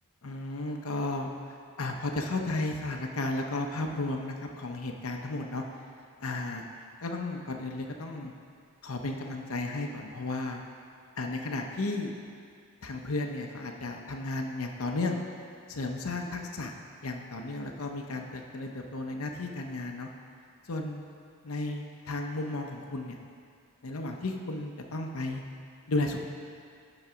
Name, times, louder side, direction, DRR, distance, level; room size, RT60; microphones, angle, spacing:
voice 1, 0.2-5.6 6.2-6.6 7.0-8.3 8.8-10.6 11.2-12.1 12.8-15.2 15.7-16.7 17.0-20.1 20.7-21.0 21.4-23.2 23.8-25.4 25.9-26.2, left 2 dB, 75° left, 2 dB, 0.7 m, -34 dB
11.0 x 4.0 x 5.6 m, 2.3 s
head